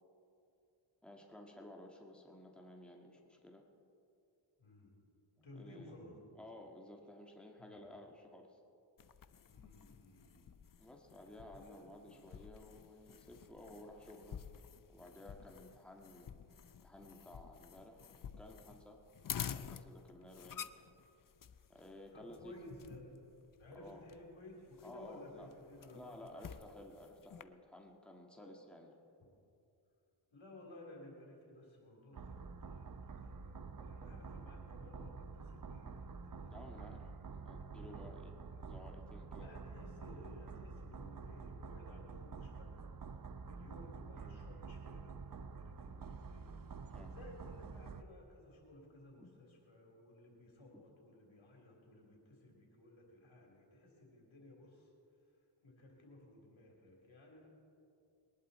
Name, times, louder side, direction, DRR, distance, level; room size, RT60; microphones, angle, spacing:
voice 1, 1.0-3.6 5.4-6.0 6.3-8.6 10.8-14.5 14.9-16.4 16.8-18.0 18.4-19.0 19.5-20.7 21.7-22.5 23.7-24.1 24.8-25.5 25.8-29.0 36.5-38.3 38.6-39.5 45.9-46.0 46.9-47.1 49.2-49.3 50.7-50.8, left 1 dB, ahead, 1 dB, 1.7 m, -54 dB
voice 2, 4.6-4.9 5.4-6.2 7.6-7.8 9.5-10.5 11.5-12.2 22.1-23.3 23.6-26.5 28.4-28.6 30.3-37.1 37.6-38.2 38.5-38.6 39.4-42.9 43.5-54.9 55.6-57.5, left 1 dB, 75° left, -1 dB, 3.5 m, -57 dB
sound 1, 9.0-27.4, left 8 dB, 45° left, 0.6 m, -51 dB
sound 2, 32.1-48.0, right 4 dB, 45° right, 0.7 m, -48 dB
21.5 x 11.0 x 4.2 m, 2.6 s
cardioid pair, 55°, 47 cm